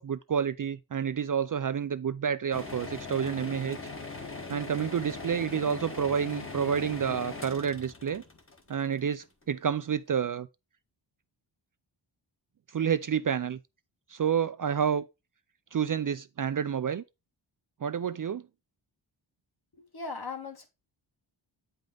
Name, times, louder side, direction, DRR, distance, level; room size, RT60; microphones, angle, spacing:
voice 1, 0.0-3.8 4.5-8.2 8.7-10.5 12.7-13.6 14.1-15.0 15.7-17.0 17.8-18.4, right 7 dB, 45° right, 0.4 m, -29 dB
sound 1, 2.5-9.4, left 3 dB, 25° left, 1.3 m, -41 dB
voice 2, 19.8-20.7, left 4 dB, 50° left, 2.1 m, -38 dB
8.8 x 5.3 x 3.8 m
wide cardioid pair, 140°, 47 cm